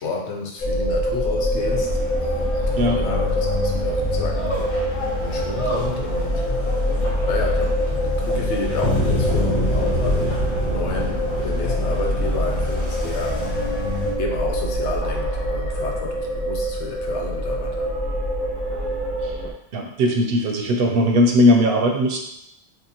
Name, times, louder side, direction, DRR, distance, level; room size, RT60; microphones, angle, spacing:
voice 1, 0.0-4.4 5.2-6.5 7.3-13.4 14.2-17.9, left 3 dB, 90° left, 1 dB, 1.0 m, -30 dB
sound 1, 0.6-19.5, equal, 15° left, 1.2 m, -24 dB
sound 2, 1.5-14.1, left 2 dB, 35° left, 1.0 m, -31 dB
voice 2, 19.7-22.2, left 1 dB, 65° right, 2 dB, 0.7 m, -18 dB
5.3 x 2.1 x 2.8 m, 0.79 s
omnidirectional pair, 1.1 m